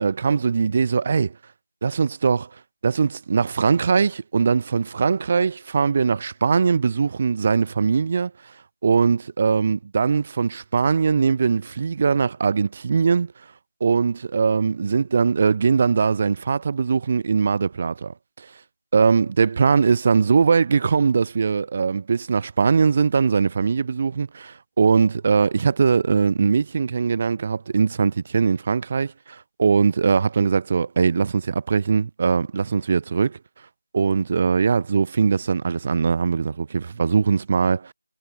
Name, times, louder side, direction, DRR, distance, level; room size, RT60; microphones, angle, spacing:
voice 1, 0.0-1.4 1.8-2.5 2.8-8.3 8.8-13.3 13.8-18.5 18.9-33.4 33.9-37.9, right 5 dB, 20° right, 3.1 m, -21 dB
figure-of-eight pair, 175°, 0 cm